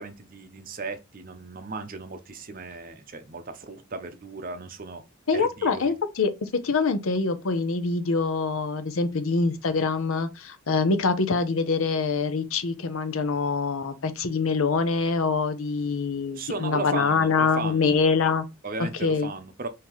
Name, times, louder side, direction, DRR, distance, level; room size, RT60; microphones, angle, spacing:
voice 1, 0.0-5.0 5.3-5.9 16.2-18.0 18.6-19.7, right 3 dB, 40° right, 0.6 m, -36 dB
voice 2, 5.3-18.4 18.8-19.3, left 4 dB, 70° left, 0.6 m, -25 dB
5.5 x 2.8 x 3.1 m
head